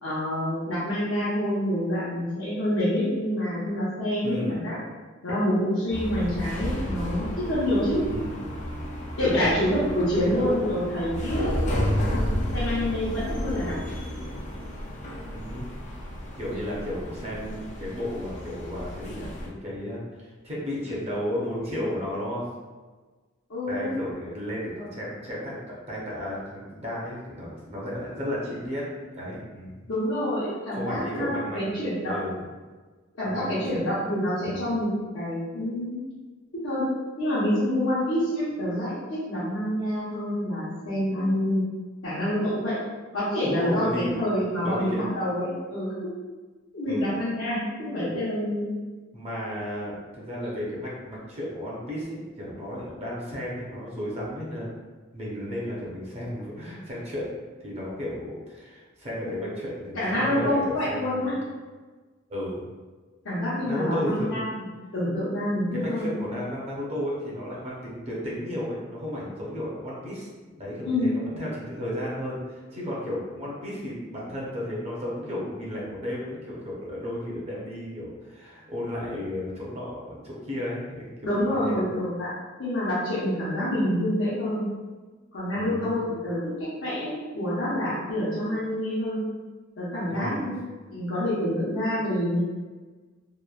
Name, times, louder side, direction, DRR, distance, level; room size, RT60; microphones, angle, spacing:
voice 1, 0.0-4.8 5.2-8.1 9.2-11.5 12.1-13.8 23.5-23.9 29.9-32.2 33.1-36.0 36.5-36.9 37.2-41.7 42.0-42.8 43.1-45.9 46.7-48.7 59.2-59.5 59.9-61.4 63.2-64.6 64.9-66.1 70.8-71.1 81.2-82.3 82.6-84.7 85.3-86.5 86.8-89.2 89.8-90.6 90.9-92.4, left 1 dB, 80° left, -10 dB, 0.8 m, -27 dB
voice 2, 4.2-4.6 8.1-8.4 9.2-9.5 10.1-10.8 11.8-12.2 15.3-15.7 16.4-22.5 23.7-28.9 29.1-29.8 30.7-32.4 33.2-33.8 34.4-34.7 43.4-44.2 44.6-45.0 46.9-47.1 48.1-48.2 49.1-54.7 55.1-57.3 57.6-61.3 62.3-62.6 63.6-64.4 65.7-81.1 81.4-81.8 85.5-85.9 90.1-90.5, left 1 dB, 35° right, -5 dB, 0.6 m, -33 dB
sound 1, 5.9-19.5, equal, 40° left, 0.4 m, -32 dB
2.9 x 2.1 x 2.3 m, 1.3 s
head